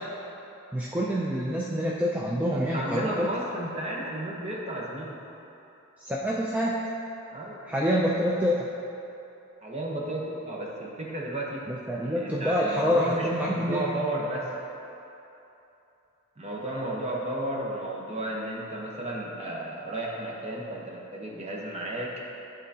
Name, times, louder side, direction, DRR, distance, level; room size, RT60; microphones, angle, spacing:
voice 1, 0.7-3.3 6.1-6.9 7.7-8.7 11.7-13.9, equal, 5° right, -5 dB, 0.3 m, -26 dB
voice 2, 2.5-5.1 7.3-7.6 9.6-11.6 12.0-14.4 16.4-22.1, right 1 dB, 30° right, -3 dB, 0.9 m, -33 dB
11.5 x 3.8 x 2.7 m, 3.0 s
head